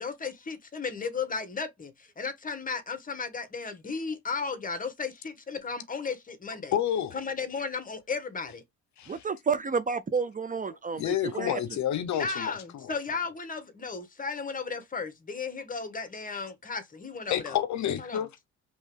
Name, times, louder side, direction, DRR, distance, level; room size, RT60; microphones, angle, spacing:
voice 1, 0.0-6.8 7.1-8.6 10.5-10.8 12.2-17.6 18.0-18.3, left 5 dB, 30° left, 1.3 m, -35 dB
voice 2, 6.7-7.1 9.0-9.2 11.0-12.9 17.3-18.3, left 10 dB, 70° left, 0.8 m, -29 dB
voice 3, 9.1-11.6, right 5 dB, 25° right, 0.5 m, -30 dB
5.3 x 3.0 x 3.3 m
cardioid pair, 90°, 30 cm